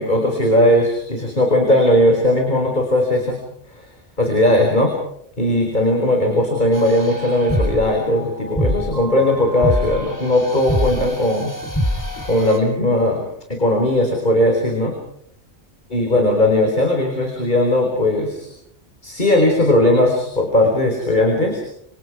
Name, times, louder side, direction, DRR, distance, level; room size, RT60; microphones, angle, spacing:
voice 1, 0.0-3.4 3.7-3.9 4.2-4.9 5.4-11.5 12.3-15.0 15.9-18.5 19.0-21.7, left 1 dB, 40° left, 1 dB, 4.7 m, -18 dB
sound 1, 6.7-12.6, equal, 15° left, 3.6 m, -25 dB
29.0 x 25.5 x 4.9 m, 0.71 s
omnidirectional pair, 1.2 m